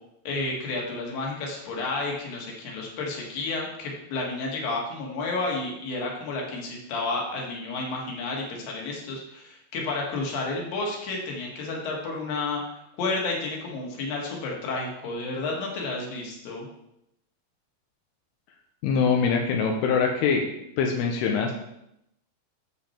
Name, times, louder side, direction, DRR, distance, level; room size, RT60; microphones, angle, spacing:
voice 1, 0.3-12.6 13.0-16.7, left 3 dB, 65° left, -1 dB, 3.5 m, -31 dB
voice 2, 18.8-20.5 20.8-21.5, left 5 dB, 85° left, 1 dB, 2.8 m, -23 dB
8.6 x 7.1 x 4.4 m, 0.82 s
omnidirectional pair, 4.4 m